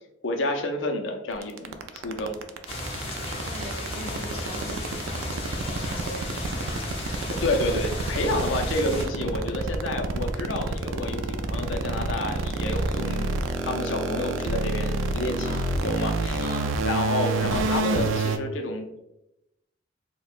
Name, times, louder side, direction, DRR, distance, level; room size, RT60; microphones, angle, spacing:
voice 1, 0.2-2.4 4.0-4.1 7.3-13.3 13.6-15.5 15.8-16.5 16.8-19.0, left 1 dB, 70° left, 4 dB, 0.5 m, -29 dB
sound 1, 1.4-18.4, right 3 dB, 80° right, 0.3 m, -27 dB
sound 2, 2.7-9.1, left 1 dB, 30° left, 0.7 m, -34 dB
voice 2, 3.1-7.1 8.3-8.5 15.4-15.7 16.4-16.8, right 1 dB, 45° right, -4 dB, 0.8 m, -41 dB
4.4 x 2.1 x 2.5 m, 0.89 s
head